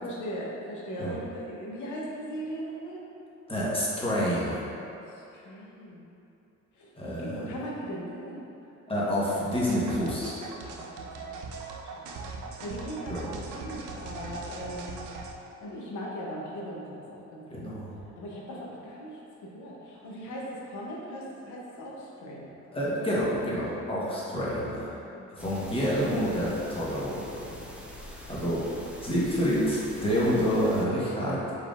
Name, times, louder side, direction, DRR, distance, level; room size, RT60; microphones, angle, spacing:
voice 1, 0.0-3.0 5.1-6.1 6.8-8.4 10.6-11.1 11.4-11.5 11.9-12.0 12.6-15.0 15.6-17.7 18.2-22.5 25.2-25.6 28.7-28.9, equal, 75° left, -3 dB, 0.9 m, -39 dB
voice 2, 3.5-4.6 7.0-7.5 8.9-10.3 13.1-13.3 17.5-18.0 22.7-25.0 25.3-27.6 28.1-28.6 29.0-31.4, equal, 20° left, -8 dB, 1.1 m, -28 dB
sound 1, 9.5-15.3, right 4 dB, 75° right, 0.5 m, -40 dB
sound 2, 25.4-30.8, left 1 dB, 5° right, 0.4 m, -45 dB
4.5 x 3.5 x 2.5 m, 2.9 s
cardioid pair, 90°, 30 cm